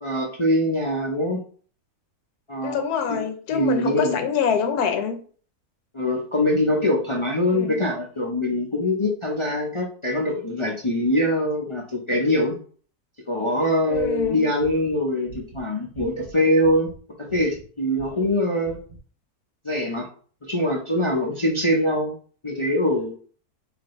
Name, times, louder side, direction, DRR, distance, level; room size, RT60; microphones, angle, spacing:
voice 1, 0.0-1.4 2.5-2.8 3.1-3.2 3.5-4.2 5.9-12.6 13.3-16.9 17.3-18.8 19.6-20.1 20.4-22.1 22.4-23.2, left 1 dB, 50° left, -2 dB, 0.3 m, -23 dB
voice 2, 2.6-5.2 7.5-7.8 13.9-14.5, left 7 dB, 75° left, 7 dB, 1.2 m, -25 dB
sound 1, 13.9-16.4 16.6-17.0 17.3-17.7 17.9-18.3 18.6-19.0, right 5 dB, 55° right, 0.6 m, -43 dB
4.9 x 2.7 x 3.0 m, 0.43 s
omnidirectional pair, 1.7 m